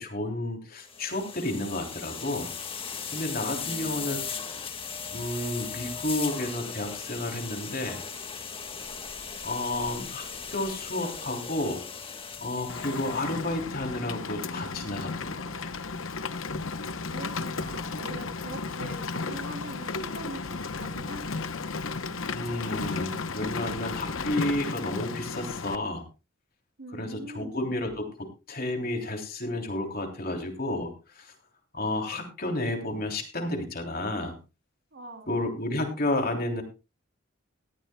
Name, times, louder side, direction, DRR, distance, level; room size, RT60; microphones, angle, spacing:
voice 1, 0.0-2.5 3.1-4.2 5.1-8.0 9.4-11.8 12.4-15.7 22.3-26.0 26.9-31.3 31.7-34.4 35.3-36.6, left 1 dB, 45° left, 3 dB, 3.2 m, -31 dB
sound 1, 0.8-13.6, left 6 dB, 25° left, 1.6 m, -38 dB
voice 2, 3.5-4.3 17.1-21.6 22.0-22.2 26.8-27.6 34.9-35.3, right 2 dB, 60° right, 4 dB, 3.3 m, -43 dB
Rain, 12.7-25.8, left 4 dB, 75° left, 0.9 m, -34 dB
18.0 x 13.5 x 2.3 m, 0.29 s
head